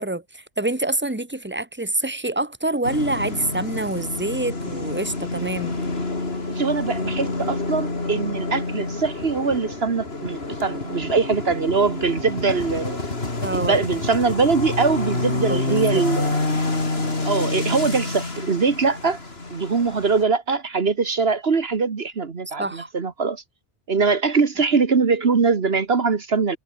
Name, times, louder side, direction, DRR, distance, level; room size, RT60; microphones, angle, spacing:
voice 1, 0.0-5.7 13.4-13.8 15.5-16.0 22.6-22.9, right 2 dB, 10° right, 2.2 m, -26 dB
sound 1, 2.8-20.2, left 3 dB, 65° left, 3.5 m, -28 dB
voice 2, 6.5-13.0 13.5-16.4 17.3-19.2 19.5-23.4 23.9-26.6, right 4 dB, 65° right, 1.7 m, -22 dB
omnidirectional pair, 1.1 m